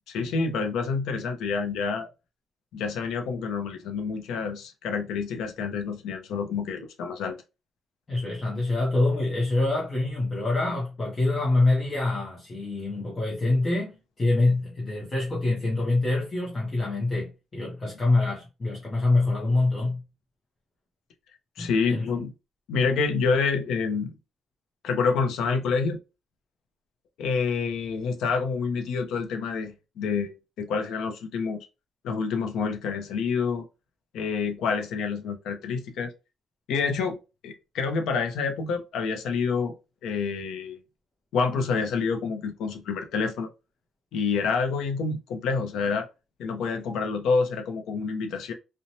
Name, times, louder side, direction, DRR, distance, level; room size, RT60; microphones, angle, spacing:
voice 1, 0.1-2.1 2.7-7.4 21.6-22.3 22.7-24.1 24.8-26.0 27.2-31.7 32.0-33.6 34.1-36.1 36.7-37.2 37.4-39.7 40.0-40.8 41.3-43.5 44.1-46.1 46.4-48.5, left 5 dB, 70° left, 0.6 m, -27 dB
voice 2, 8.1-20.0 21.6-22.2, left 2 dB, 20° left, 0.6 m, -25 dB
2.9 x 2.1 x 2.7 m
cardioid pair, 175°, 0 cm